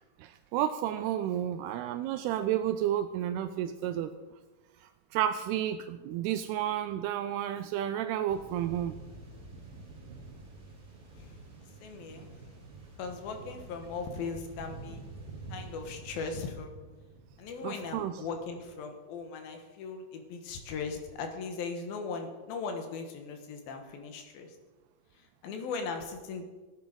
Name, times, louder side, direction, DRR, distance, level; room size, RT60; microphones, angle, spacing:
voice 1, 0.2-4.1 4.8-8.9 17.6-18.1, right 11 dB, 85° right, 10 dB, 2.5 m, -31 dB
sound 1, 8.3-16.4, right 1 dB, 25° right, 3.4 m, -52 dB
sound 2, 8.3-18.7, right 4 dB, 65° right, 2.9 m, -50 dB
voice 2, 11.8-12.3 13.0-15.0 15.5-16.7 17.4-24.6 25.2-26.5, left 4 dB, 70° left, 5 dB, 3.0 m, -38 dB
16.0 x 9.1 x 5.2 m, 1.3 s
omnidirectional pair, 4.7 m